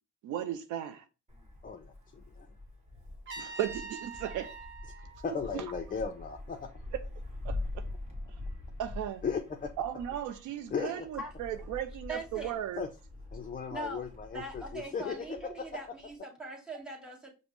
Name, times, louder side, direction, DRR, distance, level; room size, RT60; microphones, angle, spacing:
voice 1, 0.2-1.0 3.4-4.5 5.5-5.6 7.4-7.6 8.8-9.2 9.8-12.8, right 10 dB, 80° right, 0.5 m, -36 dB
Wind, 1.3-16.2, left 2 dB, 25° right, 1.3 m, -44 dB
voice 2, 1.6-2.5 5.2-6.7 9.2-9.7 10.7-11.1 12.8-12.9 13.3-15.7, left 5 dB, 30° left, 0.4 m, -36 dB
Trumpet, 3.3-6.2, right 4 dB, 40° right, 1.1 m, -45 dB
voice 3, 10.8-11.3 12.1-12.6 13.7-14.0 14.3-17.3, right 1 dB, 5° right, 1.4 m, -41 dB
5.1 x 2.0 x 3.0 m
cardioid pair, 90°, 30 cm